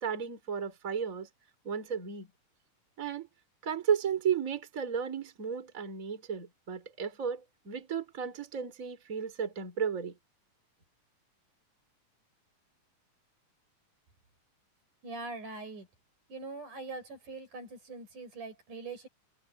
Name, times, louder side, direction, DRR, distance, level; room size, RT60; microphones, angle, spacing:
voice 1, 0.0-1.3 1.7-2.3 3.0-3.3 3.6-10.1, right 7 dB, 25° right, 3.5 m, -34 dB
voice 2, 15.0-15.9 16.3-19.1, right 3 dB, 75° right, 8.6 m, -42 dB
omnidirectional pair, 3.7 m